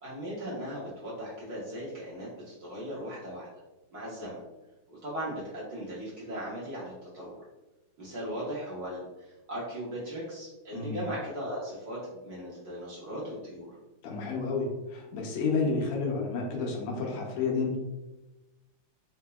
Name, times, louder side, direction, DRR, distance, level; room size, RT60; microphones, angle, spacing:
voice 1, 0.0-3.5 3.9-4.4 4.9-7.4 8.0-9.0 9.2-13.7, equal, 55° right, -7 dB, 1.3 m, -38 dB
voice 2, 14.0-17.8, left 4 dB, 90° left, 0 dB, 1.7 m, -30 dB
4.3 x 2.7 x 2.2 m, 1.1 s
omnidirectional pair, 2.4 m